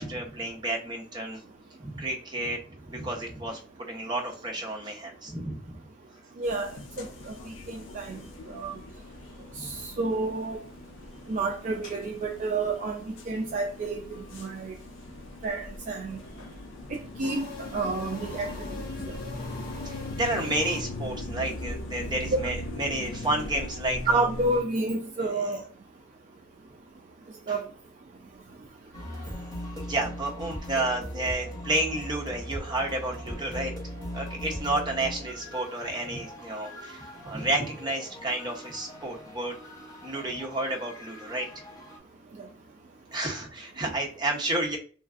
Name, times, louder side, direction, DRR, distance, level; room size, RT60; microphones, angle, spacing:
voice 1, 0.0-1.4 1.8-2.6 2.8-3.6 3.9-5.8 9.6-9.7 19.8-24.2 29.8-33.7 34.1-39.6 40.0-41.5 43.1-44.8, right 1 dB, 25° right, 0.7 m, -31 dB
sound 1, 6.4-24.6, left 1 dB, 75° left, 0.5 m, -40 dB
voice 2, 6.4-6.7 7.0-7.1 7.7-8.2 8.5-8.8 9.6-10.6 11.3-14.7 15.4-16.2 17.2-17.4 17.7-18.5 24.1-25.6 27.5-27.7 42.4-42.5, right 3 dB, 45° right, 0.3 m, -29 dB
sound 2, 17.2-21.3, left 3 dB, 50° left, 0.8 m, -43 dB
sound 3, 28.9-42.0, equal, 20° left, 0.9 m, -40 dB
3.2 x 2.5 x 2.4 m
head